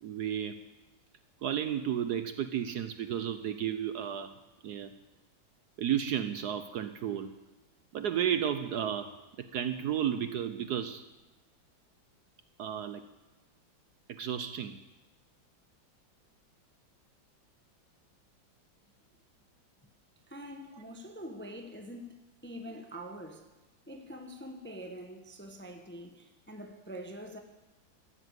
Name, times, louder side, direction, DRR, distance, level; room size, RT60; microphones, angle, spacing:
voice 1, 0.0-0.6 1.4-4.3 4.6-4.9 5.8-7.3 7.9-9.1 9.4-11.0 12.6-13.0 14.1-14.8, right 9 dB, 65° right, 1.1 m, -32 dB
voice 2, 20.3-23.5 23.9-27.4, equal, 10° left, 0.7 m, -45 dB
14.5 x 9.9 x 7.9 m
omnidirectional pair, 2.1 m